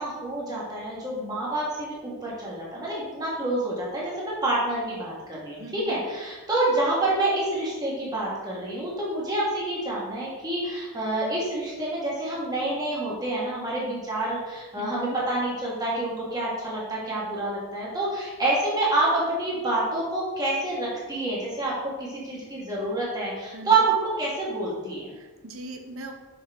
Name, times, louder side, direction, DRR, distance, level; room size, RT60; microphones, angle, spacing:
voice 1, 0.0-25.1, right 2 dB, 15° right, -5 dB, 1.2 m, -27 dB
voice 2, 5.6-6.0 14.8-15.2 23.5-23.9 25.2-26.1, right 2 dB, 70° right, 4 dB, 0.8 m, -40 dB
6.1 x 5.1 x 3.3 m, 1.2 s
head